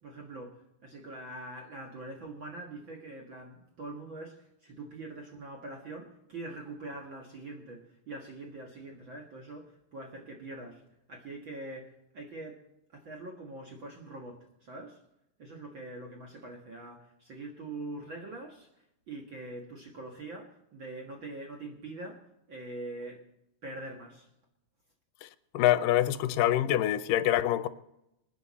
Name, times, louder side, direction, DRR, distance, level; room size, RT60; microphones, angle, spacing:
voice 1, 0.0-10.8 11.1-12.6 12.9-15.0 15.4-23.2 23.6-24.3, right 2 dB, 45° right, 1.9 m, -43 dB
voice 2, 25.5-27.7, left 13 dB, 80° left, 2.3 m, -25 dB
27.0 x 9.4 x 4.2 m
omnidirectional pair, 3.9 m